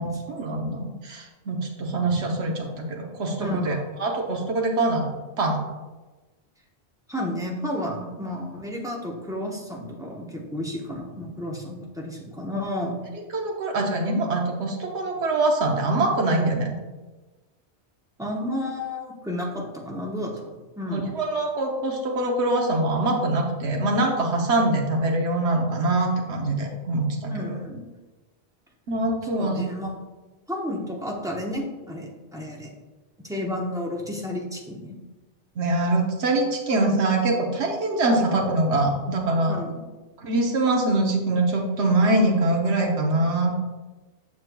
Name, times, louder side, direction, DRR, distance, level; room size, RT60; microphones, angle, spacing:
voice 1, 0.0-5.1 5.4-5.6 13.3-16.7 20.9-27.5 28.9-29.6 35.6-39.6 40.2-43.5, right 2 dB, 75° right, 1 dB, 1.2 m, -24 dB
voice 2, 3.4-3.8 7.1-13.0 18.2-21.1 27.3-27.8 29.4-29.9 30.5-32.7 33.2-35.0 39.5-39.9, left 1 dB, 5° right, -1 dB, 0.7 m, -32 dB
7.2 x 6.3 x 2.2 m, 1.2 s
omnidirectional pair, 1.1 m